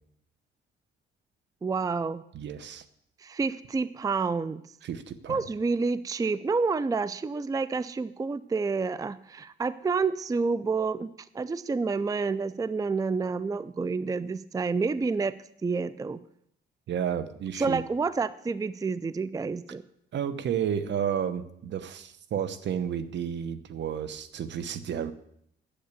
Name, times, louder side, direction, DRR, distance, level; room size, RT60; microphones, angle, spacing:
voice 1, 1.6-2.2 3.2-4.6 5.3-15.3 15.6-16.2 17.6-19.8, right 4 dB, 15° right, 16 dB, 0.4 m, -29 dB
voice 2, 2.3-2.8 4.8-5.4 16.9-17.8 20.1-25.1, right 8 dB, 65° right, 14 dB, 1.0 m, -31 dB
10.0 x 8.1 x 8.2 m, 0.73 s
cardioid pair, 90°, 20 cm